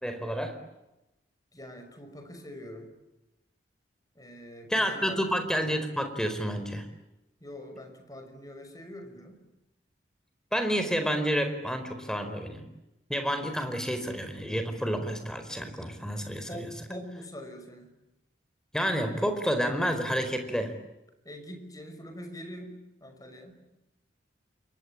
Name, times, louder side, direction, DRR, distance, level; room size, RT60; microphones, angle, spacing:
voice 1, 0.0-0.6 4.7-6.8 10.5-12.6 13.1-16.7 18.7-20.7, equal, 5° left, 7 dB, 4.5 m, -29 dB
voice 2, 1.5-2.9 4.2-5.2 7.4-9.4 16.5-17.9 21.2-23.6, equal, 20° left, 6 dB, 5.8 m, -44 dB
28.5 x 23.5 x 8.9 m, 0.95 s
head